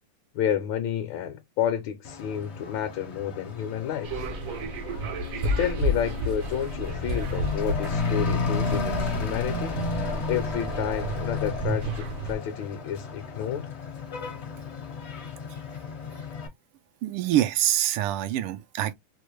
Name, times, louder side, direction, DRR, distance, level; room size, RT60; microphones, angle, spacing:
voice 1, 0.3-4.2 5.4-9.8 10.3-13.7, left 9 dB, 75° left, 1.4 m, -30 dB
Truck / Accelerating revving vroom, 2.0-16.5, left 4 dB, 55° left, 0.8 m, -33 dB
sound 1, 4.0-12.3, right 1 dB, 70° right, 0.8 m, -31 dB
voice 2, 17.0-18.9, right 13 dB, 85° right, 1.5 m, -25 dB
4.7 x 2.1 x 3.0 m
omnidirectional pair, 2.3 m